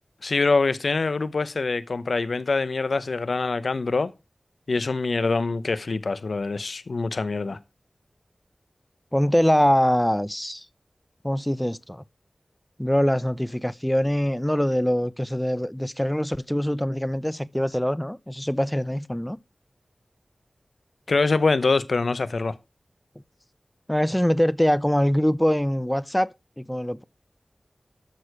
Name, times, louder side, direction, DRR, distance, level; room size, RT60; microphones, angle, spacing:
voice 1, 0.2-4.1 4.7-7.6 21.1-22.5, left 3 dB, 85° left, 0.8 m, -24 dB
voice 2, 9.1-10.7 11.2-12.0 12.8-19.4 23.9-27.0, equal, 10° left, 0.7 m, -23 dB
13.0 x 6.5 x 4.8 m
wide cardioid pair, 45°, 0 cm